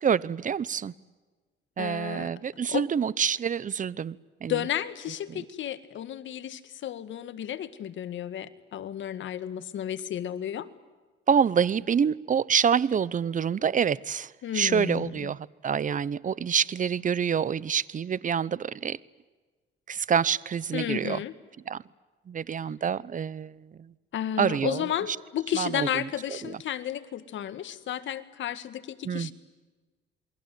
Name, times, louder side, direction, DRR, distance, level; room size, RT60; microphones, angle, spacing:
voice 1, 0.0-0.9 1.8-4.6 11.3-19.0 19.9-21.2 21.7-21.8 22.3-23.7 24.4-24.8 25.6-25.9 29.0-29.3, right 7 dB, 40° right, 21 dB, 0.9 m, -27 dB
voice 2, 1.8-2.3 2.7-2.9 4.5-10.7 14.4-15.3 20.7-21.3 24.1-29.3, left 10 dB, 70° left, 12 dB, 1.9 m, -32 dB
28.0 x 22.5 x 9.4 m, 1.3 s
cardioid pair, 90°, 20 cm